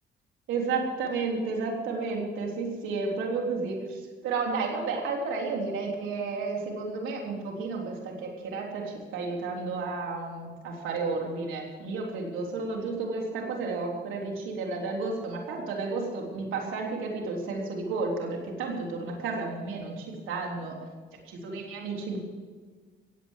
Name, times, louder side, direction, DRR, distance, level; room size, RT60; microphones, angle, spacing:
voice 1, 0.5-20.8 21.3-22.2, right 4 dB, 90° right, 0 dB, 3.6 m, -32 dB
17.0 x 8.3 x 8.1 m, 1.5 s
cardioid pair, 90°, 20 cm